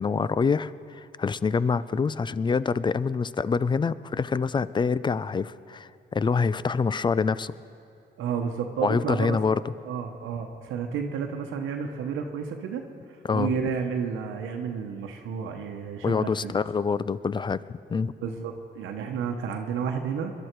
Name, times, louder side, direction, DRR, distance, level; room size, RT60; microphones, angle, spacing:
voice 1, 0.0-7.5 8.8-9.6 13.2-13.5 16.0-18.1, left 5 dB, 25° left, 17 dB, 0.4 m, -26 dB
voice 2, 8.2-9.4 9.8-12.8 13.3-16.5 18.2-20.3, right 6 dB, 85° right, 4 dB, 1.0 m, -31 dB
22.0 x 11.5 x 4.6 m, 2.6 s
cardioid pair, 90°, 20 cm